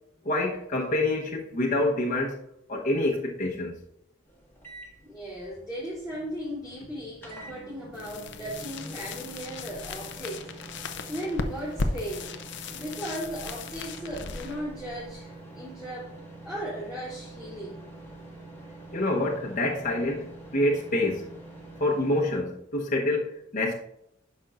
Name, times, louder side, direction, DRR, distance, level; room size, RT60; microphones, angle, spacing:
voice 1, 0.2-2.4 2.7-3.8 18.9-21.3 21.8-23.7, left 1 dB, 40° left, 1.1 m, -27 dB
sound 1, 4.3-22.3, right 2 dB, 10° left, 1.6 m, -46 dB
voice 2, 5.0-12.3 12.7-16.1 16.4-17.8, equal, 5° right, 2.7 m, -37 dB
sound 2, 7.9-15.7, left 3 dB, 60° left, 0.7 m, -37 dB
10.0 x 6.2 x 2.5 m
head